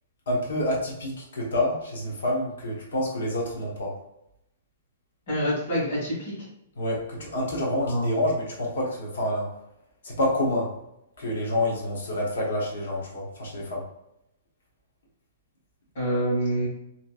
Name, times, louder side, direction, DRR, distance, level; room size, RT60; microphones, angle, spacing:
voice 1, 0.3-3.9 6.8-9.5 10.0-10.7 11.2-13.8, left 1 dB, 80° left, -2 dB, 1.0 m, -28 dB
voice 2, 5.3-6.3 7.8-8.2 15.9-16.7, equal, 50° left, -5 dB, 1.5 m, -26 dB
2.9 x 2.5 x 2.4 m, 0.82 s
hypercardioid pair, 180°, 0 cm